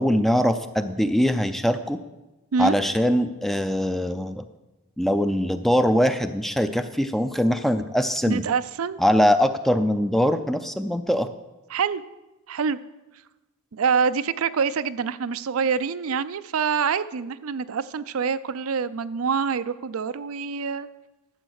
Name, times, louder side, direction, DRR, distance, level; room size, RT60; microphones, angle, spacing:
voice 1, 0.0-2.0 2.6-4.4 5.0-8.4 9.0-11.3, equal, ahead, 9 dB, 0.4 m, -22 dB
voice 2, 8.3-9.0 11.7-12.0 12.5-12.8 13.7-20.9, right 6 dB, 75° right, 14 dB, 0.5 m, -25 dB
12.0 x 7.9 x 6.4 m, 1.0 s
head